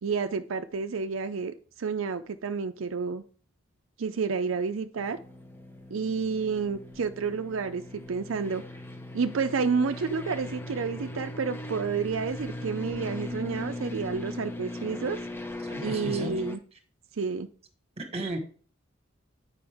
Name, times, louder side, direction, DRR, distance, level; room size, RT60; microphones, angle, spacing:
voice 1, 0.0-3.2 4.0-5.2 5.9-8.6 9.1-15.2 15.8-16.6 17.2-17.5, right 5 dB, 80° right, 8 dB, 0.5 m, -30 dB
sound 1, 5.0-16.6, left 1 dB, 10° left, 0.8 m, -39 dB
voice 2, 15.6-16.3 18.0-18.4, right 1 dB, 30° right, 5 dB, 1.4 m, -34 dB
8.7 x 5.3 x 3.5 m, 0.41 s
head